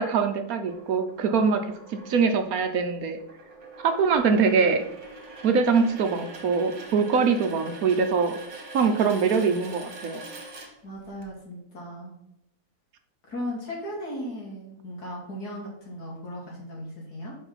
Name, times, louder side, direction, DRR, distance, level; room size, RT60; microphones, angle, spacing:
voice 1, 0.0-1.6 2.1-3.2 3.8-4.8 5.4-8.4 8.7-10.2, right 5 dB, 65° right, 7 dB, 1.2 m, -23 dB
sound 1, 0.7-11.2, right 3 dB, 50° right, 1.7 m, -44 dB
voice 2, 10.8-12.1 13.3-17.4, equal, 75° left, -3 dB, 3.0 m, -36 dB
5.6 x 5.3 x 5.7 m, 0.82 s
omnidirectional pair, 1.7 m